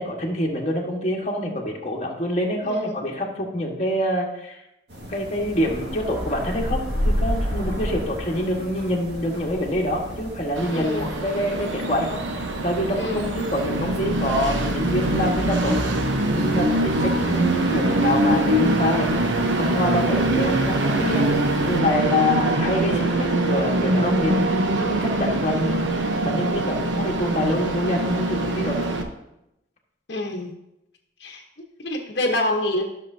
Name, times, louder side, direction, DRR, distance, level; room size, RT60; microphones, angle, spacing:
voice 1, 0.0-4.6 5.0-15.8 16.3-21.3 21.6-24.5 24.8-28.9, left 1 dB, 40° left, -1 dB, 1.5 m, -26 dB
voice 2, 2.6-2.9 10.7-11.1 13.0-13.4 30.1-30.5 31.2-31.4 31.8-32.8, left 1 dB, 60° left, 0 dB, 1.1 m, -26 dB
sound 1, 4.9-21.8, equal, 60° right, 1.8 m, -33 dB
Train, 10.6-29.0, right 1 dB, 85° right, 1.0 m, -23 dB
13.5 x 6.5 x 2.8 m, 0.88 s
head